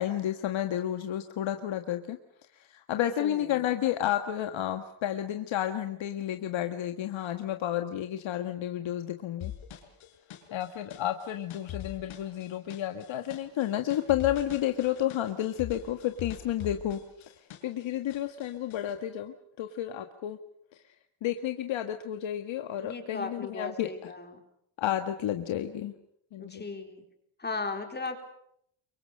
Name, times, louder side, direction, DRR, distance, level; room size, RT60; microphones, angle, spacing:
voice 1, 0.0-2.2 2.5-9.5 10.5-20.4 20.7-20.8 21.2-23.9 24.8-25.9 26.3-26.6, left 11 dB, 70° left, 7 dB, 1.7 m, -31 dB
voice 2, 3.0-3.6 22.8-24.4 26.4-27.0 27.4-28.2, left 3 dB, 20° left, 5 dB, 4.1 m, -37 dB
sound 1, 9.4-17.8 18.1-18.9, left 11 dB, 90° left, 4.4 m, -43 dB
29.0 x 25.0 x 6.6 m, 0.72 s
cardioid pair, 145°, 47 cm